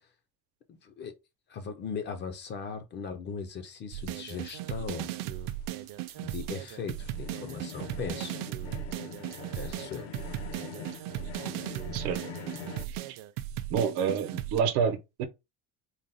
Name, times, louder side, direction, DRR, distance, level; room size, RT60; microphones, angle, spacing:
voice 1, 0.7-1.1 1.5-5.1 6.2-8.4 9.5-10.1, left 6 dB, 30° left, 0.4 m, -38 dB
sound 1, 3.9-14.6, right 13 dB, 60° right, 0.5 m, -37 dB
sound 2, 4.4-12.9, left 7 dB, 85° left, 0.6 m, -44 dB
voice 2, 13.7-15.2, right 7 dB, 90° right, 0.8 m, -28 dB
4.0 x 2.0 x 3.8 m
cardioid pair, 180°, 37 cm